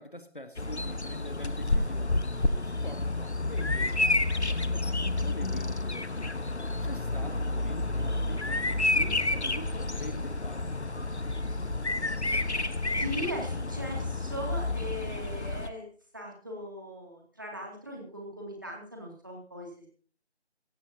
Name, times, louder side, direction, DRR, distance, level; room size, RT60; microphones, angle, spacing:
voice 1, 0.0-6.3 6.8-10.9, left 1 dB, 50° left, 1.5 m, -44 dB
Bird vocalization bird call bird song, 0.6-15.7, left 2 dB, 75° left, 1.2 m, -30 dB
voice 2, 13.0-15.9 16.1-19.9, equal, 20° right, 2.5 m, -39 dB
18.0 x 16.0 x 2.8 m
figure-of-eight pair, 170°, 34 cm